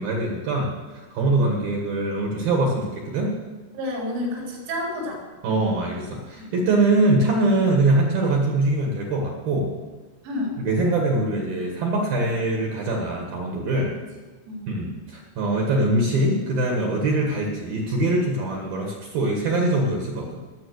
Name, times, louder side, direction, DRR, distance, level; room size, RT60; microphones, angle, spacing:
voice 1, 0.0-3.3 5.4-9.7 10.6-13.9 14.7-20.4, right 2 dB, 60° right, 0 dB, 2.6 m, -23 dB
voice 2, 3.7-5.2 6.4-6.5 10.2-10.5 14.5-14.8, left 1 dB, 85° right, -2 dB, 6.2 m, -30 dB
19.5 x 7.9 x 6.4 m, 1.3 s
omnidirectional pair, 6.0 m